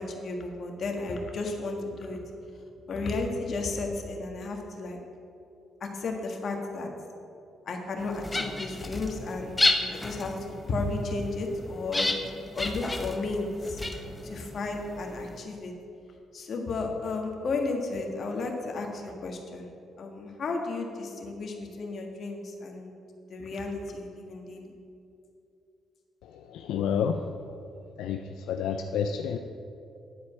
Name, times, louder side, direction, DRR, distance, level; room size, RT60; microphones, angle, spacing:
voice 1, 0.0-2.3 2.9-5.0 5.8-6.9 7.6-9.6 9.9-12.1 12.5-13.8 14.2-15.7 16.3-19.7 20.0-22.9 23.3-24.7, left 3 dB, 55° left, 2 dB, 1.5 m, -33 dB
sound 1, 8.0-15.4, left 2 dB, 20° left, 0.9 m, -32 dB
voice 2, 26.2-27.4 28.0-29.4, left 7 dB, 85° left, 6 dB, 0.4 m, -30 dB
10.0 x 4.8 x 7.4 m, 2.6 s
cardioid pair, 90°, 0 cm